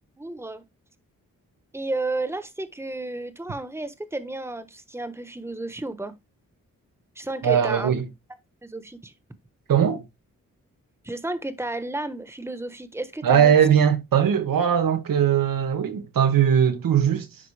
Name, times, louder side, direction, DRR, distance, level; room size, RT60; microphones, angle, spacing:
voice 1, 0.2-0.6 1.7-6.1 7.1-7.9 8.6-9.1 11.0-13.6, right 2 dB, 10° right, 1.3 m, -32 dB
voice 2, 7.4-8.0 9.7-10.0 13.2-17.3, right 8 dB, 80° right, 1.5 m, -20 dB
10.5 x 4.1 x 3.4 m
cardioid pair, 65°, 33 cm